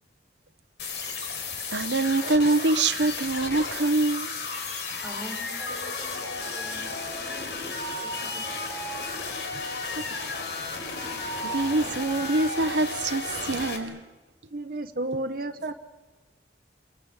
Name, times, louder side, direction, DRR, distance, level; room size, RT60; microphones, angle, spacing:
sound 1, 0.8-13.8, left 3 dB, 75° left, 4.5 m, -33 dB
voice 1, 1.7-4.4 4.9-5.0 9.7-10.2 11.4-14.0, right 2 dB, 85° right, 1.0 m, -25 dB
voice 2, 5.0-7.5 8.0-8.4, equal, ahead, 4.5 m, -45 dB
voice 3, 14.5-15.7, right 2 dB, 55° right, 1.1 m, -31 dB
28.5 x 23.0 x 8.8 m
head